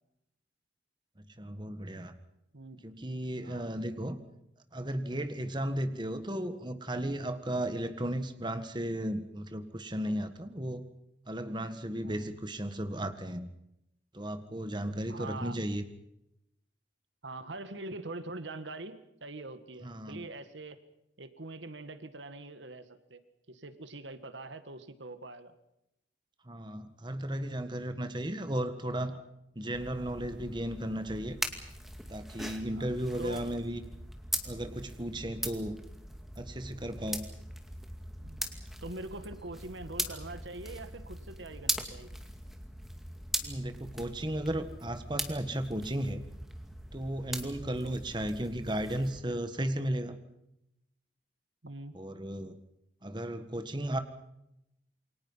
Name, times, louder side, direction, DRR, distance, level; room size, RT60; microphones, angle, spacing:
voice 1, 1.4-2.1 2.8-4.2 4.7-10.9 11.3-13.5 14.1-15.8 19.8-20.2 26.5-29.1 29.5-31.3 32.1-33.8 34.4-35.7 36.3-37.2 43.4-46.2 46.9-50.2 51.9-52.6 53.0-54.0, right 1 dB, 25° right, 9 dB, 1.6 m, -35 dB
voice 2, 3.4-3.7 5.5-5.7 12.0-12.4 15.1-15.6 17.2-20.8 21.2-23.2 23.5-25.6 27.7-28.1 29.0-29.2 31.5-31.6 32.6-33.5 35.1-35.3 38.2-42.1 47.6-47.9 51.6-51.9, right 2 dB, 85° right, 11 dB, 1.9 m, -44 dB
sound 1, 29.7-49.2, equal, ahead, 2.3 m, -40 dB
28.5 x 23.5 x 5.7 m, 0.84 s
head